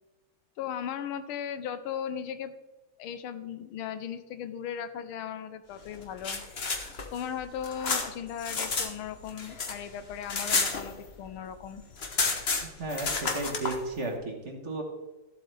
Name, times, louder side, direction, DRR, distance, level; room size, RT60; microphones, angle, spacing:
voice 1, 0.6-2.5 3.0-6.4 7.1-11.8, left 8 dB, 90° left, 11 dB, 1.6 m, -37 dB
sound 1, 6.0-8.9 9.2-11.4 11.6-11.7 11.9-13.8, left 4 dB, 40° left, 1.0 m, -30 dB
voice 2, 12.6-14.8, right 2 dB, 40° right, 2 dB, 1.5 m, -34 dB
14.0 x 7.9 x 3.3 m, 1.1 s
omnidirectional pair, 2.3 m